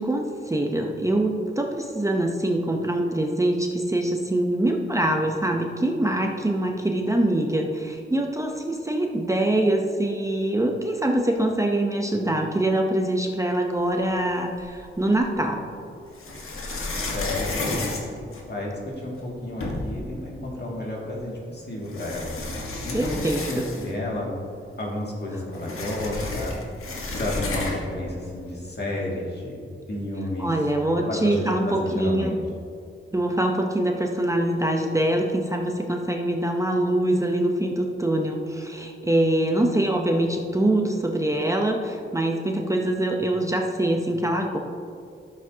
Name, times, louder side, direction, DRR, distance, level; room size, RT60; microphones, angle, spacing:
voice 1, 0.0-15.7 22.9-23.6 30.4-32.4 33.1-44.6, right 1 dB, 15° right, 2 dB, 0.7 m, -24 dB
sound 1, 14.6-15.3 16.1-18.9 19.3-19.4 19.6-20.1 21.1-21.2 21.8-24.1 24.4-24.5 24.8-28.0, left 2 dB, 80° left, 1.4 m, -32 dB
voice 2, 17.1-18.1 18.4-18.7 19.0-22.3 22.8-24.4 24.8-26.5 27.2-29.6 29.9-30.5 31.0-32.4, left 1 dB, 50° left, -3 dB, 2.1 m, -31 dB
13.0 x 7.2 x 2.8 m, 2.4 s
wide cardioid pair, 95°, 21 cm